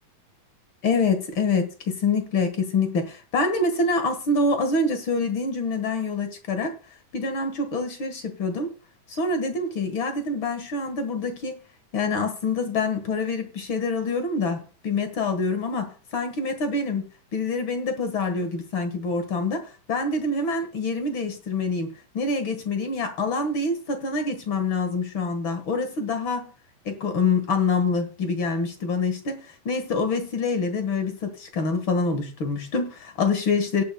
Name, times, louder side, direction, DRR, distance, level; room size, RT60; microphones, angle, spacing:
voice 1, 0.8-6.7 7.1-8.7 9.1-11.6 11.9-17.0 17.3-26.5 26.8-33.8, left 3 dB, 50° left, 1.7 m, -26 dB
18.5 x 9.4 x 2.3 m
omnidirectional pair, 4.0 m